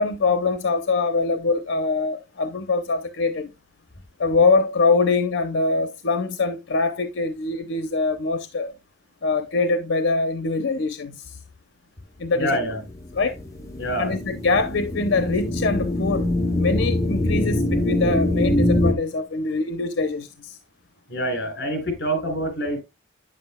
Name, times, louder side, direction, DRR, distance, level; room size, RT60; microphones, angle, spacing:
voice 1, 0.0-3.5 4.2-8.7 9.2-11.4 12.2-12.6 13.1-13.4 14.0-16.3 16.6-20.6, left 3 dB, 85° left, 0.7 m, -23 dB
voice 2, 12.4-12.8 13.8-14.1 21.1-22.8, right 1 dB, 55° left, 3.6 m, -26 dB
sound 1, 12.8-18.9, left 1 dB, 15° left, 1.1 m, -23 dB
9.2 x 7.6 x 2.2 m
head